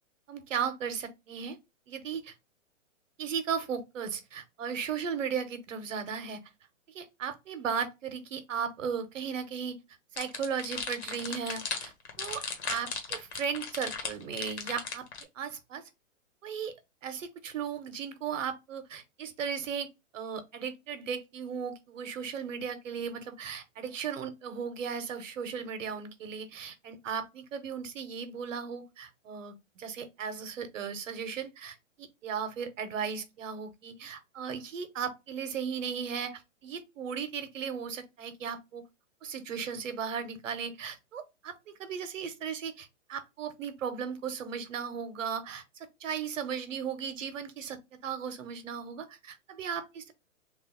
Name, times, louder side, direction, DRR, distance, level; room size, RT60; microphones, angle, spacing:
voice 1, 0.3-1.6 1.9-2.3 3.2-6.4 6.9-9.8 10.1-11.9 12.2-15.0 15.3-15.8 16.4-16.7 17.0-19.9 20.1-38.8 39.2-47.8 48.0-50.1, right 7 dB, 75° right, 1.0 m, -36 dB
sound 1, 10.2-15.2, left 5 dB, 55° left, 1.2 m, -36 dB
3.3 x 2.4 x 3.7 m
hypercardioid pair, 155°, 39 cm